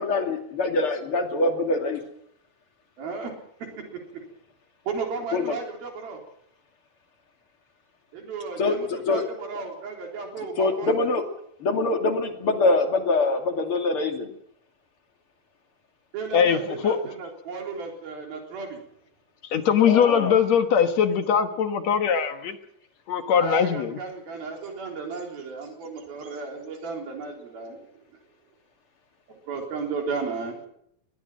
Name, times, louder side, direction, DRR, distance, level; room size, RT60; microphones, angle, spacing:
voice 1, 0.0-2.0 5.3-5.6 8.6-9.2 10.6-11.2 11.6-14.3 19.8-20.3, left 3 dB, 40° left, 5 dB, 3.0 m, -24 dB
voice 2, 3.0-3.3 3.8-3.9 4.1-4.2 4.9-6.2 8.1-11.1 16.1-18.8 23.3-27.8 29.3-30.7, right 4 dB, 80° right, 2 dB, 5.6 m, -34 dB
voice 3, 16.3-17.0 19.5-22.6 23.1-24.0, left 7 dB, 60° left, 8 dB, 2.2 m, -21 dB
21.5 x 21.0 x 6.2 m, 0.70 s
omnidirectional pair, 4.2 m